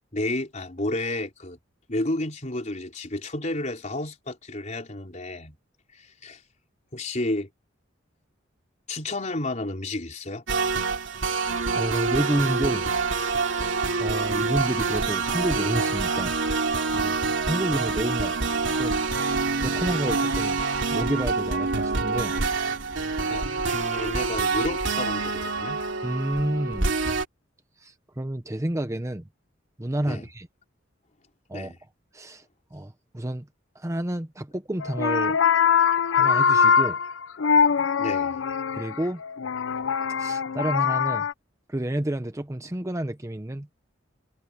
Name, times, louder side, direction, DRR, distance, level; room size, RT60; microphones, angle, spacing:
voice 1, 0.1-1.6 1.9-5.6 5.9-6.4 6.9-7.5 8.9-10.4 23.3-25.8 30.1-30.2 31.5-31.8 38.0-38.4, left 2 dB, 40° left, 4.1 m, -31 dB
sound 1, 10.5-27.3, right 4 dB, 75° right, 2.7 m, -26 dB
voice 2, 11.7-12.9 13.5-16.3 16.9-17.2 17.4-18.3 18.8-20.6 20.9-22.3 26.0-26.9 27.8-29.2 29.8-30.5 31.5-31.7 32.1-32.4 32.7-33.4 33.8-35.4 36.1-37.0 38.7-39.2 40.2-41.3 41.7-43.7, right 1 dB, 15° right, 0.9 m, -30 dB
sound 2, 34.8-41.3, left 6 dB, 80° left, 0.6 m, -22 dB
head